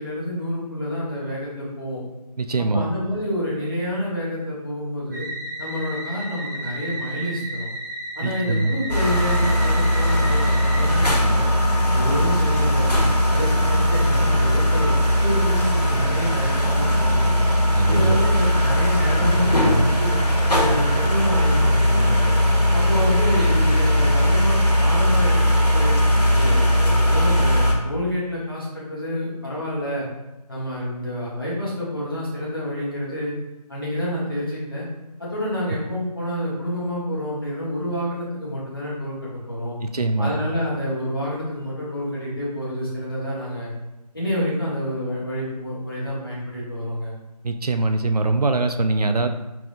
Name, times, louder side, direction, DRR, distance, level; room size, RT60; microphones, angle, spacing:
voice 1, 0.0-2.0 2.7-5.3 5.6-7.7 8.1-11.5 11.9-12.9 13.3-17.4 17.9-20.2 20.5-22.1 22.7-25.4 25.7-25.9 26.3-30.1 30.5-33.3 33.7-34.9 35.2-39.8 40.2-43.7 44.1-47.1, left 1 dB, 35° left, -8 dB, 1.4 m, -28 dB
voice 2, 2.4-2.9 8.2-8.7 17.7-18.2 39.8-40.3 47.4-49.3, right 3 dB, 70° right, 8 dB, 0.5 m, -22 dB
sound 1, 5.1-11.2, right 1 dB, 30° right, 0.8 m, -33 dB
sound 2, 8.9-27.7, equal, 80° left, 1.4 m, -19 dB
5.7 x 3.5 x 2.6 m, 1.0 s
figure-of-eight pair, 175°, 21 cm